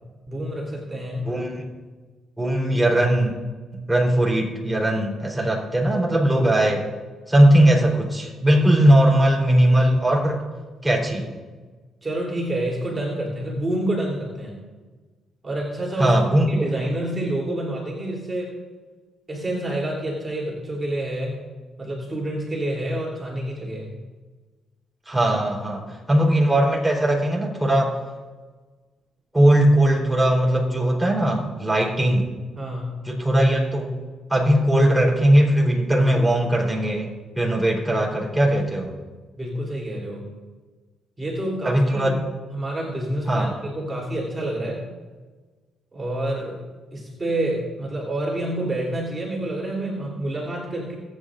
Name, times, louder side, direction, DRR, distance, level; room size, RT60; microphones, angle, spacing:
voice 1, 0.3-1.4 12.0-14.6 15.4-16.1 16.5-18.6 19.3-21.4 21.8-23.9 32.6-33.0 39.4-40.2 41.2-42.1 42.5-44.8 45.9-46.6 46.9-51.0, right 1 dB, 25° right, -3 dB, 3.3 m, -28 dB
voice 2, 1.2-1.6 2.4-3.3 3.7-6.9 7.3-10.4 10.8-11.3 16.0-16.7 25.1-28.0 29.3-32.3 33.0-34.0 34.3-38.9 41.6-42.1 43.3-43.5, right 1 dB, 5° right, -3 dB, 3.8 m, -19 dB
23.0 x 9.0 x 2.6 m, 1.3 s
cardioid pair, 90°, 0 cm